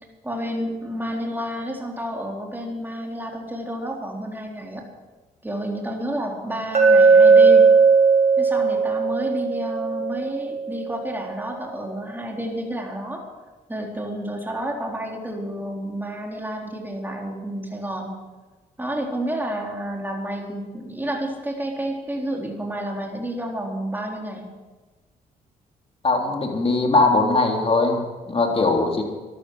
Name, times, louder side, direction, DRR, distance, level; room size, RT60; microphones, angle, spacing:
voice 1, 0.2-4.9 5.4-7.7 8.4-13.2 13.7-18.1 18.8-24.5, right 1 dB, 10° right, 0 dB, 3.9 m, -30 dB
Glass, 6.7-10.9, right 4 dB, 40° right, 3.3 m, -16 dB
voice 2, 26.0-29.0, left 3 dB, 35° left, 2 dB, 3.5 m, -20 dB
13.5 x 12.0 x 6.4 m, 1.3 s
supercardioid pair, 60°, 17 cm